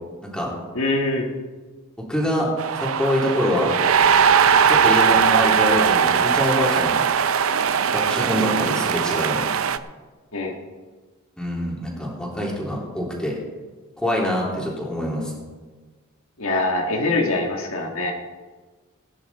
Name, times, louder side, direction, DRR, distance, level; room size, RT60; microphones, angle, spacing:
voice 1, 0.7-1.3 10.3-10.5 16.4-18.1, left 2 dB, 70° left, 2 dB, 1.7 m, -23 dB
voice 2, 2.1-2.5 2.8-3.7 4.7-6.9 7.9-9.4 11.4-13.3 14.0-15.3, left 1 dB, 5° left, -3 dB, 3.2 m, -25 dB
sound 1, 2.6-9.8, right 7 dB, 75° right, 0.6 m, -19 dB
19.0 x 10.0 x 4.2 m, 1.4 s
head